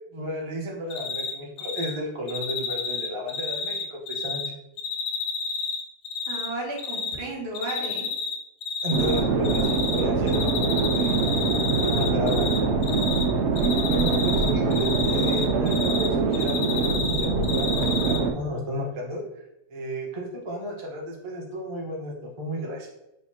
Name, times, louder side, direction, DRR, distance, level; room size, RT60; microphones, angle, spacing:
voice 1, 0.1-4.4 8.8-11.2 11.8-12.5 13.6-19.2 19.7-22.9, equal, 25° right, -2 dB, 0.7 m, -33 dB
Cricket, 0.9-1.3 1.6-1.9 2.3-4.5 4.8-6.5 6.8-7.1 7.5-8.3 8.6-10.0 10.3-12.6 12.8-13.2 13.6-16.1 16.3-18.2, left 5 dB, 90° left, 1.2 m, -30 dB
voice 2, 6.3-8.1 13.9-14.6, right 2 dB, 85° right, -2 dB, 1.7 m, -34 dB
sound 1, 8.9-18.3, right 4 dB, 60° right, 0.8 m, -24 dB
5.0 x 2.3 x 4.2 m, 0.89 s
omnidirectional pair, 1.7 m